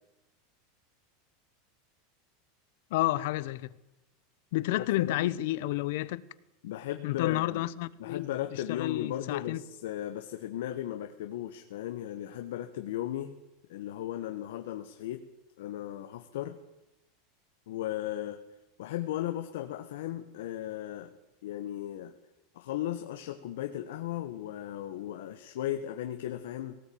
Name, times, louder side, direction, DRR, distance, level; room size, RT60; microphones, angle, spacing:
voice 1, 2.9-3.7 4.5-6.2 7.0-9.6, left 16 dB, 60° left, 0.9 m, -30 dB
voice 2, 4.7-5.3 6.6-7.6 8.0-13.4 13.7-15.2 15.6-16.6 17.7-18.4 18.8-21.1 21.4-22.1 22.5-26.8, left 12 dB, 75° left, 1.4 m, -36 dB
18.0 x 18.0 x 8.7 m
supercardioid pair, 165°, 0 cm